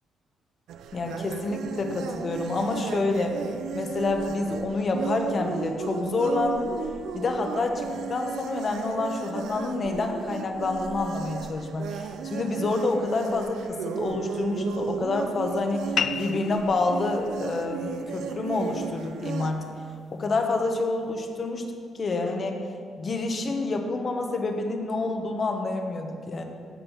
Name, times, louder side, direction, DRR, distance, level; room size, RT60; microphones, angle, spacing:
sound 1, 0.7-19.5, right 7 dB, 80° right, 0.6 m, -35 dB
voice 1, 0.9-3.4 3.7-6.7 7.1-15.9 16.2-19.6 20.1-21.6 21.9-22.6 23.0-26.4, left 3 dB, 45° left, 4 dB, 1.5 m, -28 dB
sound 2, 16.0-21.0, left 7 dB, 60° left, 0.4 m, -36 dB
16.0 x 5.4 x 5.8 m, 2.2 s
cardioid pair, 90°, 0 cm